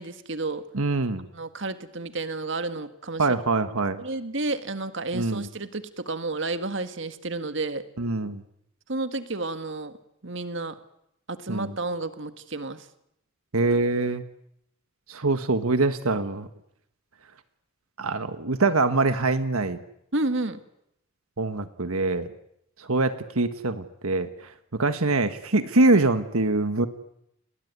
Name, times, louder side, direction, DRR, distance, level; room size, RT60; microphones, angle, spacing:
voice 1, 0.0-0.7 1.3-3.3 4.0-7.8 8.9-9.9 10.2-10.8 11.3-12.9 20.1-20.6, right 2 dB, 60° right, 9 dB, 1.8 m, -31 dB
voice 2, 0.7-1.3 3.2-4.0 5.1-5.5 8.0-8.4 11.5-11.7 13.5-14.2 15.1-16.5 18.0-19.8 21.4-22.3 22.9-24.3 24.7-26.9, right 3 dB, 85° right, 10 dB, 1.5 m, -24 dB
29.5 x 21.0 x 9.5 m, 0.79 s
head